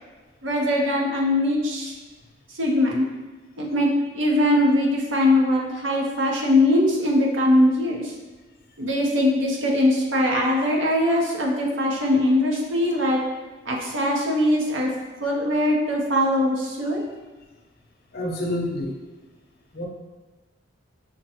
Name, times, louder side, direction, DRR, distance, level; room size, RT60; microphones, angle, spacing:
voice 1, 0.4-1.9 2.6-3.0 3.6-8.1 8.8-13.2 13.7-14.9 15.2-17.0, left 1 dB, 75° right, -1 dB, 0.7 m, -21 dB
voice 2, 18.1-19.0 19.7-19.8, left 1 dB, 50° left, 0 dB, 0.6 m, -28 dB
5.9 x 2.2 x 2.9 m, 1.2 s
head